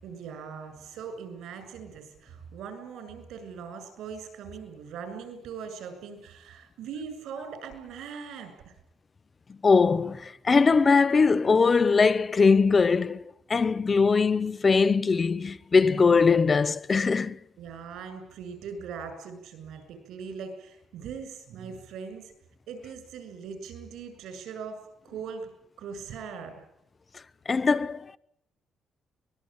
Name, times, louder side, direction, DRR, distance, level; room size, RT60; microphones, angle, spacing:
voice 1, 0.0-8.7 17.6-22.3 22.7-25.5 25.8-26.6, right 6 dB, 85° right, 7.1 m, -40 dB
voice 2, 9.6-13.2 13.5-17.4 27.5-28.2, left 4 dB, 35° left, 0.9 m, -21 dB
24.5 x 20.0 x 9.0 m
cardioid pair, 90°, 0 cm